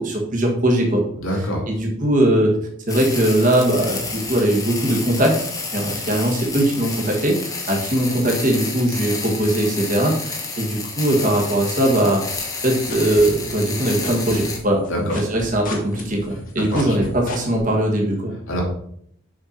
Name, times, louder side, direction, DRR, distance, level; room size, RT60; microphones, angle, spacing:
voice 1, 0.0-1.0 1.7-2.6 2.9-5.4 5.7-12.2 12.6-18.3, right 1 dB, 40° right, 0 dB, 1.7 m, -20 dB
voice 2, 1.2-1.6 14.9-15.2 16.7-16.9 18.5-18.6, equal, 70° left, -2 dB, 2.7 m, -25 dB
sound 1, 2.9-14.6, left 3 dB, 15° left, 1.2 m, -30 dB
sound 2, 12.3-13.7 14.0-17.6, left 2 dB, 40° left, 1.5 m, -33 dB
6.6 x 5.7 x 4.5 m, 0.68 s
head